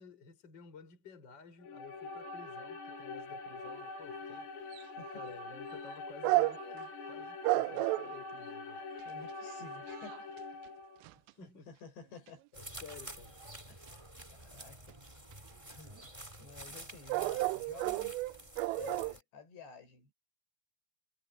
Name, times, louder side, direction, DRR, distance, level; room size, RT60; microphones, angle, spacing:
voice 1, 0.0-4.5 5.1-8.8 11.4-11.7 12.5-13.4, left 5 dB, 20° left, 5.3 m, -53 dB
sound 1, 1.6-11.1, left 3 dB, 80° left, 7.4 m, -44 dB
sound 2, 4.7-4.8 6.2-6.8 7.4-8.1 9.0-9.1 9.5-9.6 9.9-10.4 11.1-11.3 14.9-15.0 15.3-15.4 16.8-16.9 17.1-19.1, right 21 dB, 85° right, 3.1 m, -32 dB
voice 2, 4.9-5.3 9.1-10.3 11.3-12.5 13.7-15.0 15.2-15.3 15.7-16.1 16.4-18.2 18.7-20.1, left 6 dB, 55° left, 7.1 m, -52 dB
sound 3, 12.5-19.2, right 1 dB, 10° right, 2.0 m, -50 dB
omnidirectional pair, 5.9 m